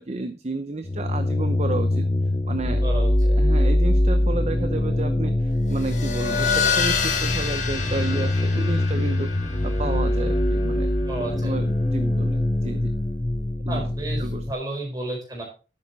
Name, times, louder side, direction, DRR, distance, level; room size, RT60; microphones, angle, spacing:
voice 1, 0.0-2.1 2.5-2.8 3.2-9.3 9.6-10.9 11.4-12.9 13.6-13.9 14.2-14.4, right 2 dB, 35° right, 9 dB, 0.7 m, -31 dB
sound 1, 0.8-14.5, left 1 dB, 20° left, 0.6 m, -23 dB
voice 2, 2.8-3.1 11.0-11.6 13.7-15.4, right 2 dB, 20° right, -1 dB, 4.5 m, -32 dB
sound 2, 5.6-12.7, left 5 dB, 40° left, 2.0 m, -29 dB
11.0 x 8.7 x 4.1 m, 0.34 s
head